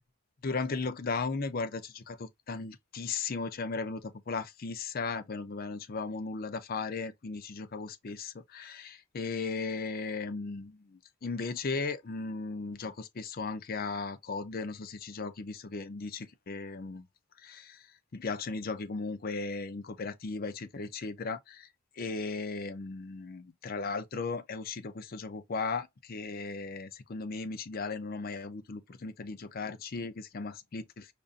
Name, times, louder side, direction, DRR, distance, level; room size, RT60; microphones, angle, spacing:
voice 1, 0.4-17.0 17.4-17.9 18.1-21.7 22.0-31.1, left 4 dB, 40° left, 0.5 m, -36 dB
5.2 x 2.6 x 2.4 m
head